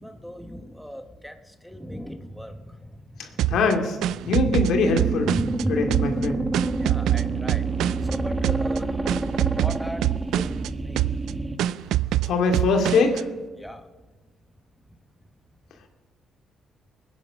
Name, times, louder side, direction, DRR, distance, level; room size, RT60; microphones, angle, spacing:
voice 1, 0.0-1.3 1.6-2.5 4.2-4.5 5.2-6.4 6.8-7.7 8.1-8.8 9.6-10.0 10.3-10.5 10.9-11.0 13.6-13.8, equal, ahead, 6 dB, 1.2 m, -36 dB
sound 1, 3.4-5.6 5.9-8.2 8.4-8.8 9.1-10.7 11.0-11.3 11.6-13.2, right 13 dB, 85° right, 0.3 m, -25 dB
voice 2, 3.5-4.0 4.3-5.3 5.7-6.4 12.3-13.2, left 4 dB, 80° left, 4 dB, 2.4 m, -22 dB
sound 2, 4.7-11.6, right 3 dB, 20° right, 1.2 m, -28 dB
21.5 x 9.8 x 5.7 m, 1.3 s
cardioid pair, 90°, 0 cm